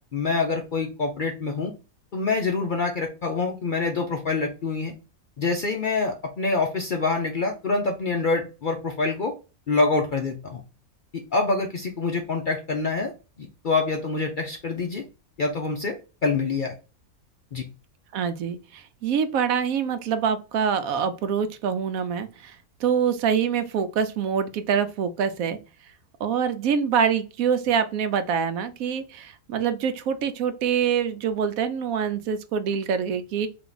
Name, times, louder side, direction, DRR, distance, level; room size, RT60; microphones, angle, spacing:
voice 1, 0.1-1.7 2.1-4.9 5.4-9.3 9.7-10.6 11.1-13.1 13.4-15.0 15.4-16.0 16.2-16.7 17.5-17.7, left 3 dB, 55° left, 2 dB, 0.5 m, -26 dB
voice 2, 18.1-25.6 26.2-33.5, right 7 dB, 75° right, 10 dB, 1.0 m, -25 dB
3.4 x 2.9 x 3.9 m, 0.31 s
omnidirectional pair, 1.5 m